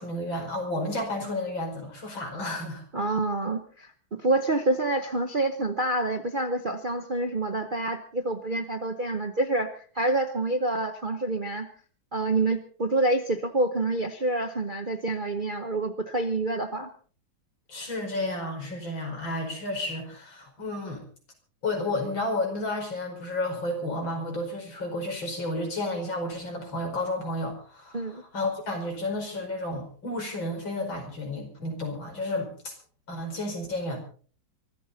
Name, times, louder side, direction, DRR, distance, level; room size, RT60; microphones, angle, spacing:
voice 1, 0.0-2.8 17.7-21.0 21.6-32.7 33.1-34.0, left 1 dB, 70° left, 3 dB, 5.8 m, -32 dB
voice 2, 2.9-11.7 12.1-16.9 27.9-28.2, right 2 dB, 40° right, 7 dB, 0.8 m, -27 dB
24.0 x 14.0 x 4.1 m, 0.44 s
omnidirectional pair, 2.2 m